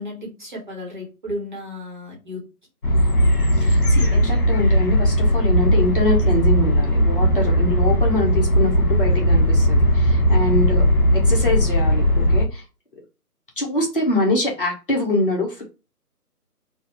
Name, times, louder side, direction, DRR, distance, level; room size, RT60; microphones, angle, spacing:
voice 1, 0.0-2.4, left 1 dB, 30° right, -3 dB, 1.2 m, -33 dB
sound 1, 2.8-12.5, equal, 65° left, 1.5 m, -18 dB
voice 2, 3.6-10.9 11.2-12.6 13.6-15.6, left 1 dB, 35° left, -2 dB, 1.3 m, -24 dB
3.9 x 2.4 x 4.2 m, 0.30 s
figure-of-eight pair, 155°, 47 cm